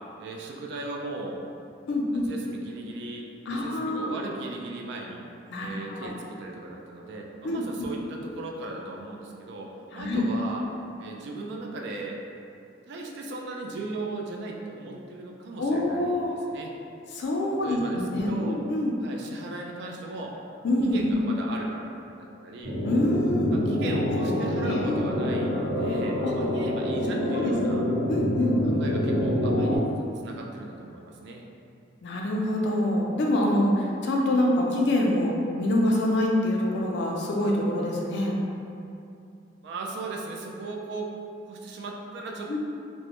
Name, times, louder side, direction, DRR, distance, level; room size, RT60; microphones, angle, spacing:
voice 1, 0.2-1.4 2.1-5.2 5.6-10.6 11.0-12.2 12.9-16.7 17.6-18.6 19.0-20.4 20.8-21.9 22.2-22.8 23.5-27.8 28.6-31.4 39.6-41.1 41.5-42.6, right 2 dB, 65° right, 0 dB, 0.3 m, -37 dB
voice 2, 1.9-2.3 3.5-4.1 5.5-6.1 7.4-7.9 9.9-10.3 15.6-16.3 17.1-18.9 20.6-21.1 22.8-23.5 24.2-25.0 26.2-26.3 27.2-27.5 28.1-28.6 32.0-38.4 42.5-42.6, left 1 dB, 65° left, -1 dB, 0.4 m, -26 dB
sound 1, 22.6-29.8, equal, 40° right, 1.0 m, -26 dB
2.1 x 2.0 x 2.8 m, 2.6 s
head